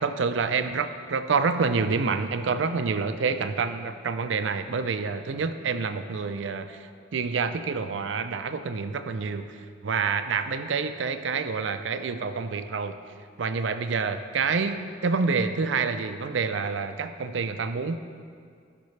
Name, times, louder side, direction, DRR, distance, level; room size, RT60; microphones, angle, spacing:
voice 1, 0.0-12.9 13.4-18.0, right 5 dB, 80° right, 9 dB, 0.5 m, -28 dB
14.5 x 5.9 x 3.2 m, 2.1 s
head